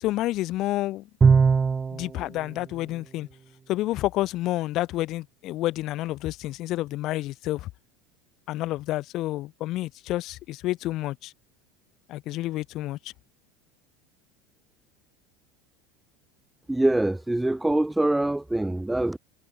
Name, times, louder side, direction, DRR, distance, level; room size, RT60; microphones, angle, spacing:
voice 1, 0.0-1.1 1.9-3.3 3.7-7.7 8.5-11.3 12.1-13.0, left 16 dB, 55° left, 1.1 m, -29 dB
Bowed string instrument, 1.2-2.1, right 5 dB, 25° right, 1.5 m, -18 dB
voice 2, 16.7-19.2, right 1 dB, 5° right, 2.6 m, -24 dB
hypercardioid pair, 95°, 0 cm